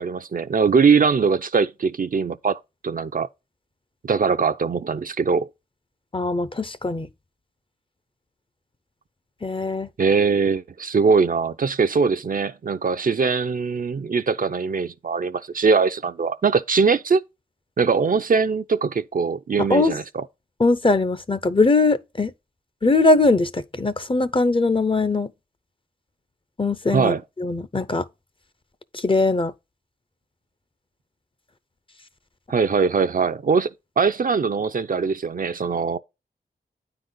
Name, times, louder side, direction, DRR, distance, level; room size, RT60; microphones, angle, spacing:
voice 1, 0.0-3.3 4.0-5.5 10.0-17.2 17.8-20.2 26.9-27.2 32.5-36.0, right 5 dB, 50° right, 0.5 m, -21 dB
voice 2, 6.1-7.1 9.4-9.9 19.7-19.9 20.6-22.3 22.8-25.3 26.6-28.0 28.9-29.5, left 3 dB, 30° left, 0.7 m, -21 dB
9.1 x 4.0 x 3.9 m
cardioid pair, 45°, 18 cm